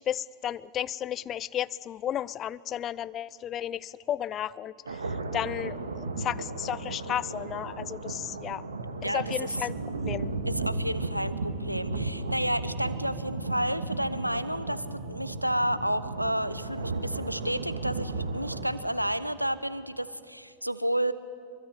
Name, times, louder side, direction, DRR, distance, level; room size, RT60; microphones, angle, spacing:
voice 1, 0.0-8.6 9.1-9.7 10.0-10.3, left 11 dB, 30° left, 20 dB, 0.5 m, -33 dB
sound 1, 4.9-18.7, right 3 dB, 70° right, 1.9 m, -34 dB
voice 2, 9.0-9.6 10.5-21.1, equal, 90° right, 15 dB, 0.8 m, -31 dB
23.0 x 23.0 x 9.5 m, 2.7 s
figure-of-eight pair, 90°, 0 cm